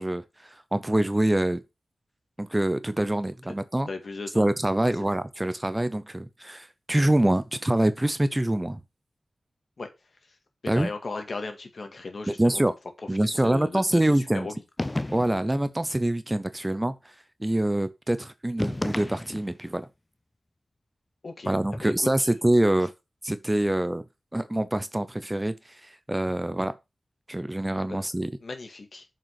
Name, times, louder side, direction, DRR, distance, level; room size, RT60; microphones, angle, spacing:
voice 1, 0.0-1.6 2.4-3.9 4.3-8.8 10.7-10.9 12.4-12.7 13.1-14.5 15.1-16.9 17.4-19.9 21.5-22.9 23.2-24.0 24.3-26.7 27.3-28.3, right 1 dB, 15° right, 0.7 m, -25 dB
voice 2, 3.9-4.5 9.8-9.9 10.6-12.6 13.3-14.6 21.2-21.5 21.8-21.9 22.2-22.3 27.9-28.0 28.4-29.1, left 3 dB, 55° left, 2.1 m, -36 dB
sound 1, 14.8-15.5 18.6-19.6, left 1 dB, 20° left, 0.6 m, -32 dB
7.3 x 5.5 x 5.9 m
wide cardioid pair, 90°, 0 cm